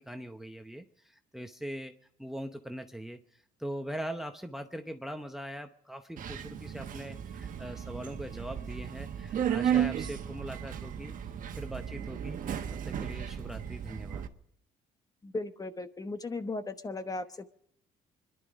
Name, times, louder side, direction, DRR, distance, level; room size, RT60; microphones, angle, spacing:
voice 1, 0.0-1.9 2.2-11.1 11.5-12.4 12.8-14.2, equal, ahead, 7 dB, 0.8 m, -41 dB
Subway metro underground, 6.2-14.3, right 9 dB, 50° right, 1.3 m, -34 dB
voice 2, 15.2-17.4, left 3 dB, 20° left, 10 dB, 1.1 m, -36 dB
25.5 x 11.0 x 5.1 m, 0.75 s
cardioid pair, 110°, 17 cm